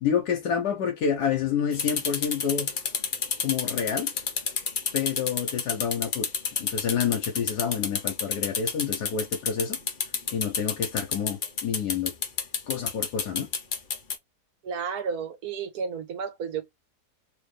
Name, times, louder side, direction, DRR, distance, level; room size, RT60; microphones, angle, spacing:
voice 1, 0.0-2.7 3.4-4.1 4.9-6.3 6.6-9.8 10.3-12.1 12.7-13.5, left 7 dB, 75° left, 1.4 m, -28 dB
sound 1, 1.7-14.1, left 6 dB, 50° left, 0.6 m, -29 dB
voice 2, 14.6-16.6, right 6 dB, 65° right, 1.5 m, -32 dB
3.2 x 3.1 x 3.2 m
omnidirectional pair, 1.8 m